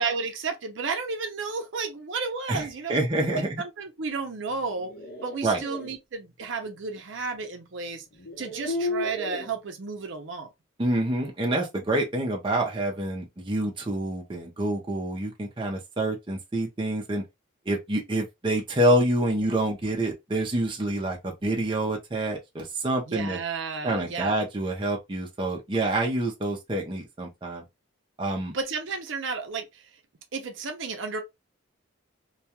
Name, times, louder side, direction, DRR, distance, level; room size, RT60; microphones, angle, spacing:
voice 1, 0.0-3.0 3.3-4.9 5.2-8.0 8.4-10.5 23.1-24.3 28.5-29.8 30.3-31.2, right 4 dB, 70° right, 0.6 m, -32 dB
voice 2, 2.5-3.5 5.4-5.6 10.8-17.2 17.7-23.4 23.8-27.6 28.2-28.5, right 1 dB, 25° right, 0.5 m, -27 dB
sound 1, 4.6-5.9 7.4-7.5 8.1-9.5, left 2 dB, 50° left, 0.9 m, -33 dB
2.3 x 2.2 x 2.8 m
head